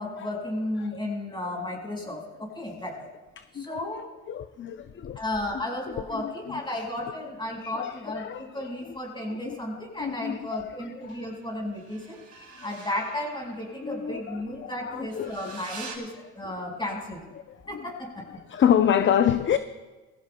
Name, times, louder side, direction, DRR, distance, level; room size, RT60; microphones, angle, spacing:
voice 1, 0.0-3.0 3.5-4.0 5.1-12.2 12.6-17.2 17.7-18.2, left 1 dB, 15° left, 4.9 m, -34 dB
voice 2, 3.4-3.8 4.3-5.2 5.9-6.6 7.6-8.5 9.5-9.6 10.0-10.6 11.1-11.2 12.3-12.7 13.8-15.3 16.5-16.6 17.5-17.8 18.3-19.6, left 9 dB, 40° left, 0.5 m, -27 dB
sound 1, 7.3-8.7 11.0-16.0, right 5 dB, 65° right, 2.6 m, -48 dB
21.0 x 16.0 x 2.2 m
cardioid pair, 90°, 30 cm